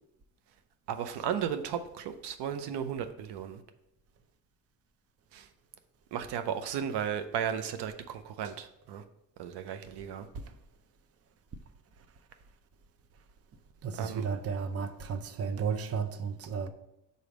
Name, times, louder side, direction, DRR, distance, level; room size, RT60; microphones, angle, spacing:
voice 1, 0.9-3.6 5.3-5.5 6.1-9.0 9.4-10.3 14.0-14.2, right 8 dB, 90° right, 0.6 m, -35 dB
voice 2, 13.8-16.7, right 6 dB, 40° right, 0.5 m, -33 dB
5.0 x 4.0 x 5.1 m
cardioid pair, 100°, 39 cm